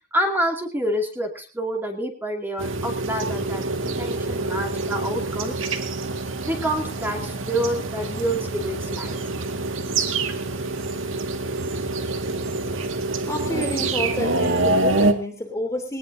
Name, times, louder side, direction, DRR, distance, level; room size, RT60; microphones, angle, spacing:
voice 1, 0.1-5.6 6.4-9.2, right 1 dB, 10° right, 2 dB, 2.5 m, -27 dB
sound 1, 2.6-15.1, right 2 dB, 80° right, 2.0 m, -26 dB
voice 2, 13.3-16.0, left 1 dB, 15° left, 3 dB, 3.2 m, -29 dB
20.0 x 19.5 x 2.8 m, 0.34 s
head